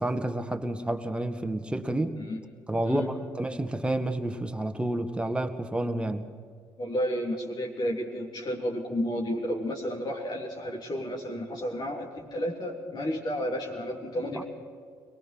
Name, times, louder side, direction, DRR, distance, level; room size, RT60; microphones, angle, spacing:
voice 1, 0.0-2.2 2.7-6.3 14.3-14.4, right 1 dB, 10° right, 6 dB, 1.9 m, -30 dB
voice 2, 6.8-14.4, equal, 45° left, -2 dB, 3.5 m, -32 dB
23.0 x 20.5 x 6.2 m, 2.1 s
hypercardioid pair, 50°, 10 cm